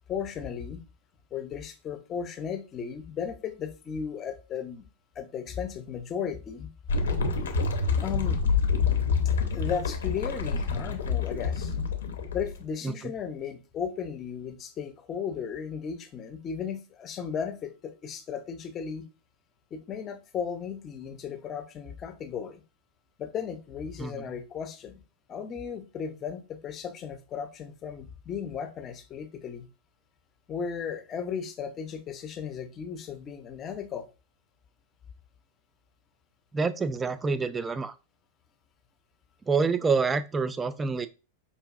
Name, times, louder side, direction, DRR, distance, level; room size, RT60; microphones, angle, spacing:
voice 1, 0.1-0.8 1.3-4.9 5.2-6.7 8.0-8.4 9.5-11.7 12.3-19.1 19.7-22.6 23.2-25.0 25.3-29.7 30.5-34.1, left 7 dB, 30° left, 0.6 m, -35 dB
sound 1, 6.9-12.6, left 5 dB, 65° left, 0.7 m, -27 dB
voice 2, 36.5-37.9 39.5-41.1, right 4 dB, 15° right, 0.4 m, -27 dB
5.1 x 2.6 x 2.4 m
figure-of-eight pair, 90°, 0 cm